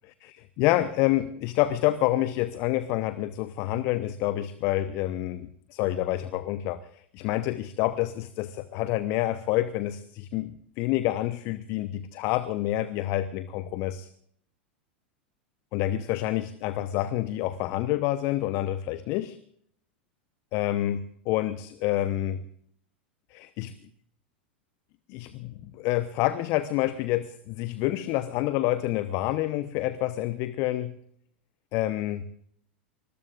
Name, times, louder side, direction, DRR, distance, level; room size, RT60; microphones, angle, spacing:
voice 1, 0.3-6.8 7.1-14.1 15.7-19.4 20.5-22.4 23.3-23.7 25.1-30.9 31.7-32.3, left 14 dB, 50° left, 13 dB, 0.9 m, -28 dB
25.0 x 20.5 x 2.5 m, 0.64 s
figure-of-eight pair, 90°, 6 cm